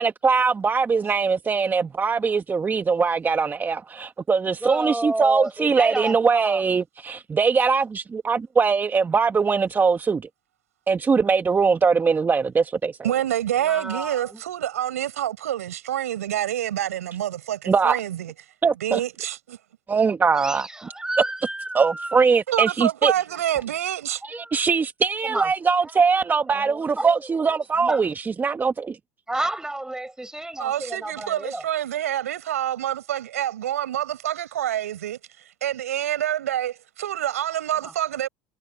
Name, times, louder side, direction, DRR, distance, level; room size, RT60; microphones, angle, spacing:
voice 1, 0.0-10.3 10.9-13.0 17.6-18.0 18.6-19.0 19.9-20.7 21.7-23.1 24.2-28.1 28.4-29.0, right 5 dB, 25° right, 1.7 m, -21 dB
voice 2, 4.6-6.6 13.6-14.4 20.4-22.2 23.5-23.6 24.2-24.5 25.2-25.5 25.8-26.0 26.5-27.4 27.8-28.0 29.3-31.6 37.8-37.9, right 2 dB, 10° right, 6.1 m, -30 dB
voice 3, 13.0-18.3 18.8-19.6 22.5-24.2 30.6-35.2 35.6-38.3, right 11 dB, 85° right, 7.6 m, -27 dB
hypercardioid pair, 80°, 8 cm